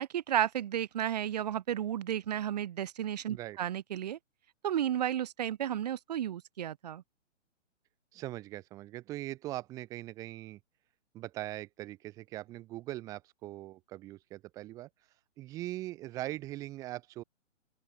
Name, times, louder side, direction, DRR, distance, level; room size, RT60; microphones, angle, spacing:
voice 1, 0.0-4.2 4.6-7.0, right 10 dB, 30° right, 1.1 m, -33 dB
voice 2, 8.1-10.6 11.1-14.9 15.4-17.2, right 16 dB, 10° right, 1.1 m, -41 dB
open air
hypercardioid pair, 170°, 38 cm